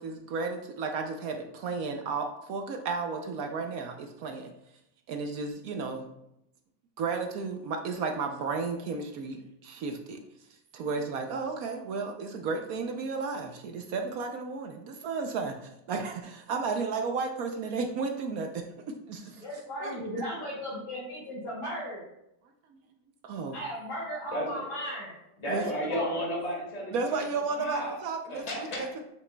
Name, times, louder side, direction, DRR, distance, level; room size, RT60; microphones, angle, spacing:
voice 1, 0.0-4.5 5.1-6.1 7.0-10.2 10.7-19.4 19.8-20.0 22.7-22.8 23.2-23.6 25.5-25.6 26.9-28.9, right 4 dB, 65° right, 4 dB, 1.0 m, -33 dB
voice 2, 19.4-22.0 23.5-25.1 25.4-26.1, equal, 70° left, -9 dB, 2.8 m, -36 dB
voice 3, 24.3-24.6 25.4-27.3 27.5-28.0 28.3-29.0, left 1 dB, 20° left, -4 dB, 1.8 m, -33 dB
7.3 x 6.4 x 2.2 m, 0.82 s
omnidirectional pair, 1.8 m